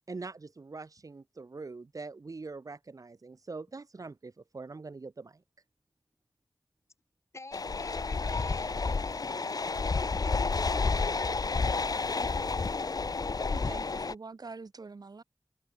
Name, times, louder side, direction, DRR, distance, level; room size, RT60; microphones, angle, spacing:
voice 1, 0.0-5.4, right 3 dB, 60° right, 0.9 m, -43 dB
voice 2, 7.3-9.9 10.2-12.2, left 2 dB, 45° left, 2.6 m, -49 dB
sound 1, 7.5-14.1, left 4 dB, 70° left, 1.0 m, -30 dB
voice 3, 13.5-15.2, right 4 dB, 75° right, 2.8 m, -44 dB
wide cardioid pair, 60°, 7 cm